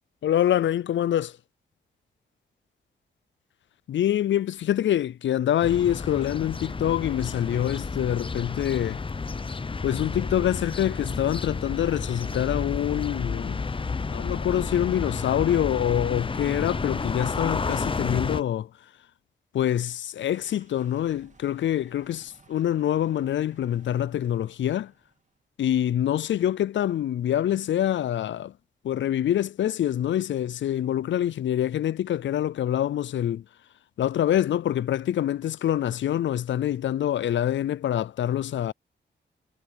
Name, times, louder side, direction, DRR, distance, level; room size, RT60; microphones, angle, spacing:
voice 1, 0.2-1.3 3.9-9.0 9.8-13.6 14.1-18.7 19.5-24.9 25.6-28.5 28.8-33.4 34.0-38.7, left 11 dB, 75° left, 0.4 m, -25 dB
sound 1, 5.6-18.4, left 4 dB, 25° left, 0.6 m, -31 dB
sound 2, 19.8-25.4, right 4 dB, 40° right, 1.9 m, -58 dB
cardioid pair, 65°, 20 cm